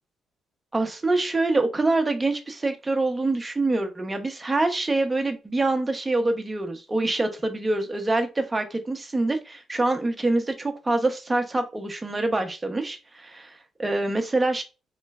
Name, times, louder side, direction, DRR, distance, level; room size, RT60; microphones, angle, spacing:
voice 1, 0.7-14.6, right 2 dB, 20° right, 5 dB, 0.7 m, -25 dB
3.1 x 3.0 x 2.3 m, 0.30 s
cardioid pair, 90°, 0 cm